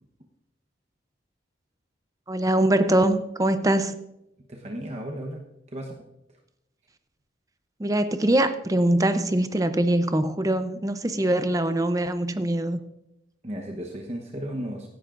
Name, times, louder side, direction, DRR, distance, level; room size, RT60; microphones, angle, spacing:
voice 1, 2.3-4.0 7.8-12.8, right 1 dB, 20° right, 10 dB, 0.6 m, -23 dB
voice 2, 4.5-6.1 13.4-14.9, equal, 35° right, 1 dB, 1.1 m, -35 dB
16.0 x 10.5 x 2.6 m, 0.84 s
head